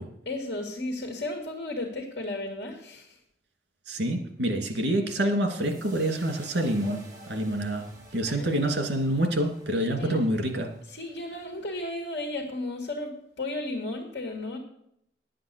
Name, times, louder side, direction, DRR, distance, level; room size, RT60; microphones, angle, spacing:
voice 1, 0.3-3.2 8.3-8.6 10.0-10.2 10.9-13.1 13.4-14.6, left 2 dB, 65° left, 2 dB, 1.9 m, -34 dB
voice 2, 3.9-7.9 8.1-10.7, right 1 dB, 75° right, 3 dB, 2.4 m, -27 dB
sound 1, 5.6-12.0, right 1 dB, 20° right, 4.0 m, -53 dB
11.0 x 7.7 x 6.8 m, 0.75 s
head